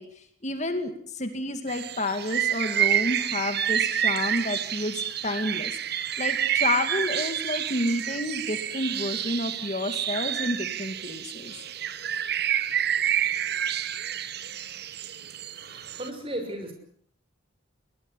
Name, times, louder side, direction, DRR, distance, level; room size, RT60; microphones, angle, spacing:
voice 1, 0.0-11.5, left 1 dB, 35° left, 7 dB, 2.3 m, -30 dB
sound 1, 1.7-16.1, right 10 dB, 50° right, 1.2 m, -29 dB
voice 2, 15.6-16.7, right 1 dB, 25° right, 5 dB, 6.2 m, -35 dB
22.5 x 19.0 x 9.9 m, 0.63 s
head